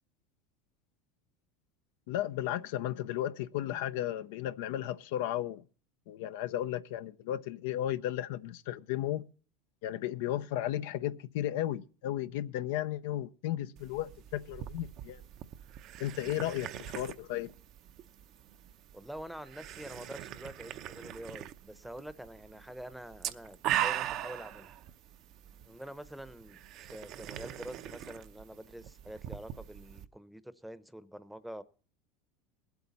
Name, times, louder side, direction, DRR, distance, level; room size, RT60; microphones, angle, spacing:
voice 1, 2.1-5.6 6.1-9.3 9.8-15.2 16.0-17.5, left 12 dB, 75° left, 0.5 m, -34 dB
sound 1, 13.8-30.1, right 12 dB, 55° right, 0.7 m, -41 dB
voice 2, 18.9-24.7 25.6-31.6, right 1 dB, ahead, 0.8 m, -46 dB
19.5 x 8.2 x 4.1 m
hypercardioid pair, 100°, 0 cm